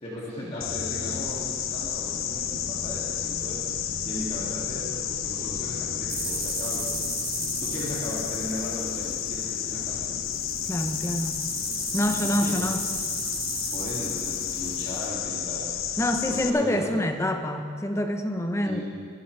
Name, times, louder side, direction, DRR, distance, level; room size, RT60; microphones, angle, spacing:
voice 1, 0.0-6.9 7.6-10.1 12.0-12.6 13.7-16.0 16.3-17.0 18.6-18.8, left 1 dB, 30° left, -8 dB, 2.3 m, -37 dB
sound 1, 0.6-16.5, left 9 dB, 80° left, 0.7 m, -31 dB
sound 2, 6.1-9.7 10.3-15.1, right 6 dB, 50° right, 1.9 m, -36 dB
voice 2, 10.7-11.4 11.9-12.8 16.0-18.8, left 1 dB, 15° left, 6 dB, 0.8 m, -26 dB
23.0 x 10.0 x 3.3 m, 2.1 s
head